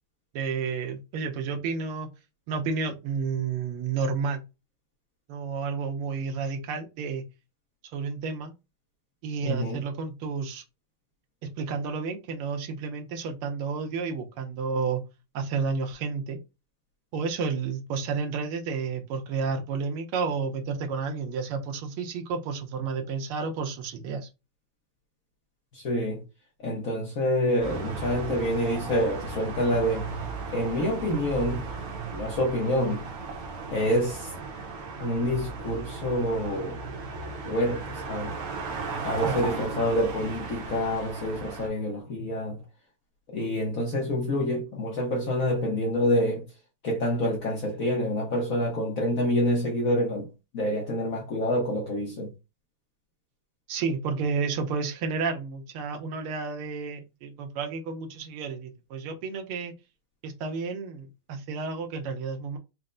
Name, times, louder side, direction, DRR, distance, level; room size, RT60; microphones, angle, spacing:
voice 1, 0.3-2.1 2.5-4.4 5.3-7.2 7.9-8.5 9.2-10.6 11.6-15.0 15.3-16.4 17.1-24.3 39.2-39.4 53.7-59.7 60.2-62.6, right 5 dB, 80° right, 1.7 m, -31 dB
voice 2, 9.4-9.8 25.7-26.2 26.6-30.1 30.5-31.7 32.1-33.0 33.7-34.3 35.0-36.8 37.4-38.4 39.0-42.6 43.3-46.5 46.8-50.3 50.5-52.3, left 1 dB, 60° left, 0.8 m, -27 dB
sound 1, 27.6-41.7, right 4 dB, 60° right, 1.0 m, -36 dB
4.4 x 2.0 x 3.7 m
omnidirectional pair, 2.4 m